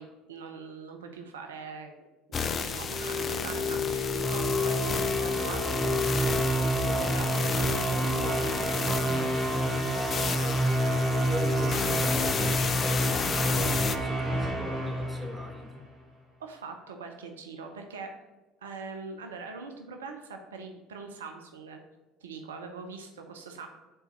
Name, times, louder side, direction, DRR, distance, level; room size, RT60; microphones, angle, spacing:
voice 1, 0.0-1.9 2.4-6.4 6.7-8.5 16.4-18.1 18.6-21.8 22.2-23.7, right 4 dB, 75° right, 4 dB, 0.5 m, -42 dB
sound 1, 2.3-14.0, left 6 dB, 35° left, 0.4 m, -33 dB
sound 2, 2.7-15.8, equal, 30° right, 1.7 m, -28 dB
voice 2, 9.1-10.7 11.2-15.8, left 1 dB, 5° right, 1 dB, 1.2 m, -40 dB
4.5 x 3.9 x 5.7 m, 1.1 s
figure-of-eight pair, 65°, 0 cm